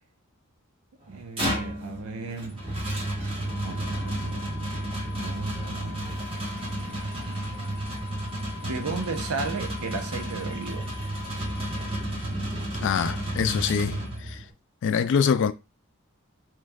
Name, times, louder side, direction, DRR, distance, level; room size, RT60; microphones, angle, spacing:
sound 1, 1.0-14.5, right 1 dB, 25° right, 1.0 m, -32 dB
voice 1, 1.1-2.6 3.6-6.1 8.6-10.9, right 4 dB, 80° right, 0.7 m, -35 dB
sound 2, 3.5-12.0, left 9 dB, ahead, 0.7 m, -46 dB
voice 2, 12.8-14.4 14.8-15.5, left 7 dB, 55° left, 0.3 m, -25 dB
3.1 x 2.3 x 3.4 m
head